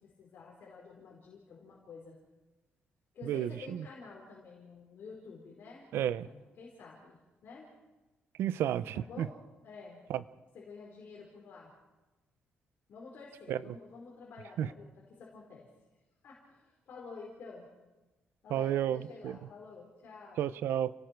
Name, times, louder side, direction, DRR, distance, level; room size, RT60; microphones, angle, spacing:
voice 1, 0.0-2.2 3.1-7.7 8.9-10.0 10.5-11.7 12.9-14.9 15.2-15.7 16.2-17.7 18.4-20.4, left 4 dB, 55° left, -3 dB, 4.7 m, -50 dB
voice 2, 3.2-3.9 5.9-6.3 8.4-9.3 10.1-10.2 13.5-13.6 14.6-14.7 18.5-19.3 20.4-20.9, right 11 dB, 85° right, 15 dB, 0.7 m, -31 dB
30.0 x 18.5 x 4.7 m, 1.1 s
cardioid pair, 165°, 4 cm